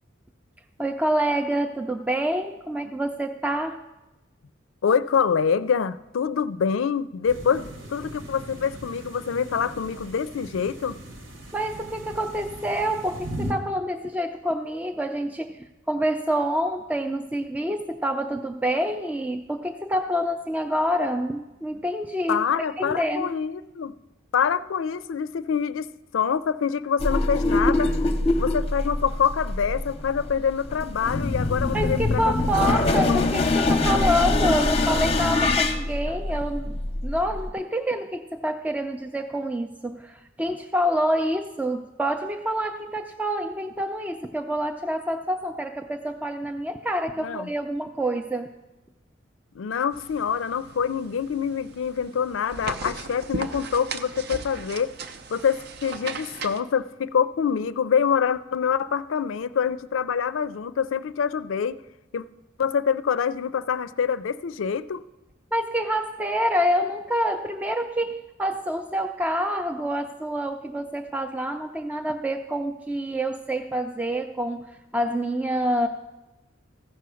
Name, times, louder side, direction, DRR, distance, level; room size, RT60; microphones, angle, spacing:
voice 1, 0.8-3.8 11.5-22.4 22.8-23.3 31.7-48.5 65.5-75.9, equal, 10° right, 4 dB, 0.3 m, -27 dB
voice 2, 4.8-11.0 22.3-24.0 24.3-25.9 26.1-27.9 28.4-32.3 32.6-32.8 33.1-33.3 47.2-47.5 49.5-54.9 55.3-61.8 62.1-62.3 62.6-65.0, left 7 dB, 85° left, 15 dB, 0.4 m, -25 dB
sound 1, 7.3-13.5, right 1 dB, 80° right, 1.7 m, -39 dB
sound 2, 27.0-37.5, left 2 dB, 30° left, 0.7 m, -24 dB
sound 3, 49.9-56.6, right 4 dB, 55° right, 0.6 m, -37 dB
14.5 x 5.7 x 6.3 m, 1.0 s
head